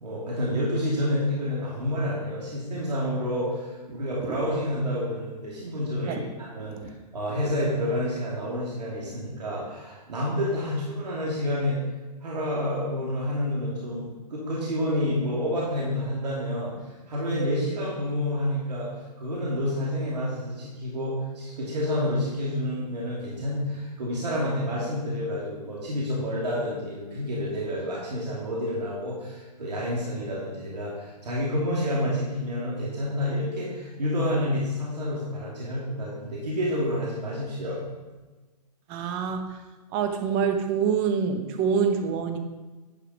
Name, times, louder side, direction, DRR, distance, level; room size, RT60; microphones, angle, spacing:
voice 1, 0.0-6.8 7.1-11.8 12.2-16.7 17.1-18.9 19.2-37.8, left 1 dB, 75° right, -6 dB, 2.8 m, -29 dB
voice 2, 38.9-39.6 39.9-42.4, right 6 dB, 25° right, 6 dB, 0.9 m, -26 dB
10.5 x 5.0 x 5.0 m, 1.2 s
hypercardioid pair, 140°, 21 cm